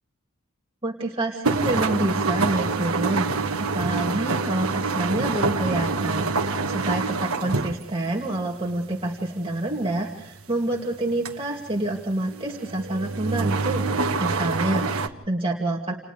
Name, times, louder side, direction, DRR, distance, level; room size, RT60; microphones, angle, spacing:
voice 1, 0.8-3.3 3.6-13.8 14.2-15.9, right 1 dB, 25° right, -2 dB, 2.5 m, -27 dB
sound 1, 1.4-8.4 8.7-11.3 11.7-15.1, right 4 dB, 85° right, 1.4 m, -26 dB
30.0 x 29.5 x 3.4 m, 0.78 s
head